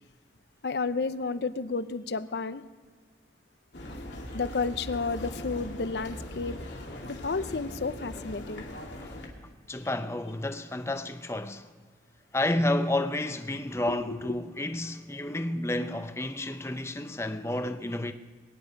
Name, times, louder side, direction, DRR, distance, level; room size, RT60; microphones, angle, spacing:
voice 1, 0.6-2.6 4.3-6.6 7.1-8.7 13.9-14.4, left 4 dB, 65° left, 0.6 m, -31 dB
sound 1, 3.7-9.3, left 1 dB, 85° left, 2.5 m, -40 dB
voice 2, 9.7-11.7 12.3-18.1, left 1 dB, 15° left, 0.6 m, -30 dB
21.5 x 10.0 x 5.2 m
head